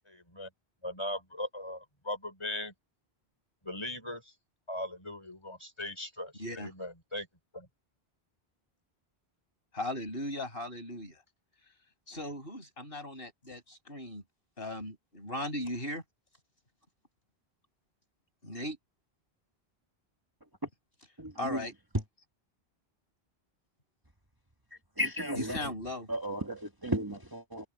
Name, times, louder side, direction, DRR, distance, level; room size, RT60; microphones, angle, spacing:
voice 1, 0.1-0.5 0.8-2.7 3.6-4.3 4.7-7.3 7.5-7.7, left 1 dB, 25° left, 5.5 m, -39 dB
voice 2, 6.4-6.7 9.7-11.2 12.1-14.2 14.6-16.0 18.4-18.8 21.4-21.7 25.3-26.1, left 1 dB, 65° left, 6.5 m, -37 dB
voice 3, 21.2-21.6 25.0-25.7 26.1-27.7, equal, 20° right, 1.5 m, -34 dB
omnidirectional pair, 1.0 m